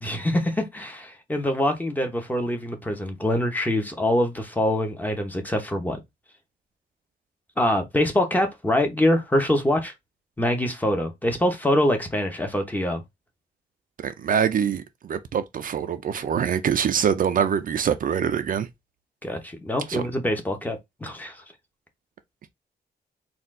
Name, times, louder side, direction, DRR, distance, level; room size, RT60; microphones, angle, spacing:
voice 1, 0.0-6.0 7.6-9.9 10.4-13.0 19.2-21.4, left 1 dB, 10° left, 0.9 m, -24 dB
voice 2, 14.0-18.7 19.9-20.0, right 8 dB, 55° right, 0.5 m, -24 dB
4.2 x 2.4 x 3.7 m
wide cardioid pair, 140°, 17 cm